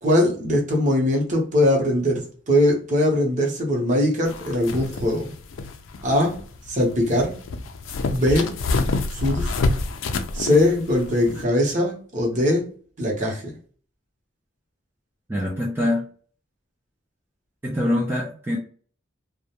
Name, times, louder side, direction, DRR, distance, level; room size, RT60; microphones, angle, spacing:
voice 1, 0.0-5.3 6.0-6.4 6.7-7.3 8.1-8.5 9.1-9.5 10.3-12.7 13.0-13.5, left 1 dB, 40° right, 0 dB, 0.7 m, -21 dB
sound 1, 4.3-11.4, left 3 dB, 80° left, 0.4 m, -28 dB
voice 2, 15.3-16.1 17.6-18.6, left 1 dB, 10° right, -3 dB, 0.4 m, -24 dB
2.3 x 2.1 x 2.8 m, 0.43 s
head